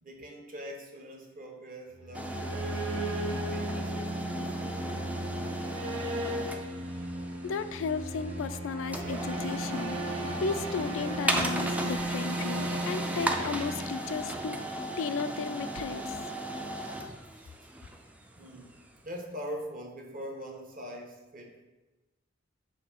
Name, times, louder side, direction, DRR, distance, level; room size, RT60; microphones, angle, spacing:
voice 1, 0.0-5.1 17.3-17.5 17.8-17.9 18.4-18.8 19.0-21.7, equal, 45° right, 1 dB, 1.0 m, -43 dB
sound 1, 2.0-14.8, right 1 dB, 80° right, 0.7 m, -35 dB
sound 2, 2.1-19.0, right 1 dB, 5° right, 0.4 m, -36 dB
voice 2, 7.4-16.2, left 5 dB, 70° left, 12 dB, 0.3 m, -35 dB
6.4 x 2.7 x 5.6 m, 1.1 s
head